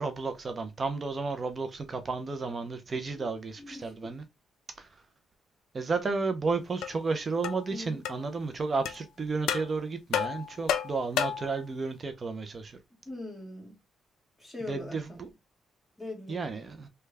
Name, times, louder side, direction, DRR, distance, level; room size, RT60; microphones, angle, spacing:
voice 1, 0.0-4.2 4.8-4.9 5.7-12.8 14.7-15.3 16.3-16.9, right 4 dB, 35° right, 0.5 m, -32 dB
voice 2, 3.6-3.9 7.7-8.0 13.0-13.8 14.4-15.2 16.0-16.5, left 2 dB, 5° left, 1.5 m, -41 dB
sound 1, 6.8-6.9 7.4-7.6 8.0-8.2 8.8-9.0 9.5-9.7 10.1-11.5, left 8 dB, 90° left, 0.3 m, -30 dB
3.3 x 2.3 x 3.2 m
cardioid pair, 95°, 0 cm